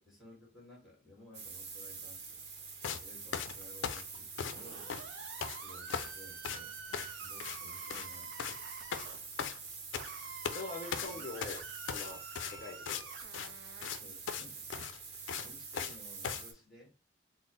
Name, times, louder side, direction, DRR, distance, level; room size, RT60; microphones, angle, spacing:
voice 1, 0.0-2.4 3.0-5.0 5.6-8.5 10.9-11.2 12.4-12.5 13.9-14.8 15.4-16.9, left 2 dB, ahead, -5 dB, 1.4 m, -56 dB
sound 1, 1.3-16.5, right 5 dB, 60° right, 0.9 m, -47 dB
sound 2, 2.8-3.0 3.3-4.6 4.9-5.6 5.9-6.2 6.4-6.6 6.9-7.1 7.4-7.6 7.8-8.1 8.4-8.6 8.9-10.1 10.4-10.6 10.9-13.0 13.3-13.5 13.8-14.0 14.3-14.5 14.7-16.0 16.2-16.4, left 7 dB, 90° left, 0.4 m, -38 dB
sound 3, 4.5-9.2 9.9-14.1, right 5 dB, 85° right, 0.5 m, -48 dB
voice 2, 10.5-11.6 11.8-12.2 12.5-13.1, left 3 dB, 40° left, 0 dB, 0.7 m, -43 dB
3.9 x 2.1 x 3.8 m, 0.34 s
head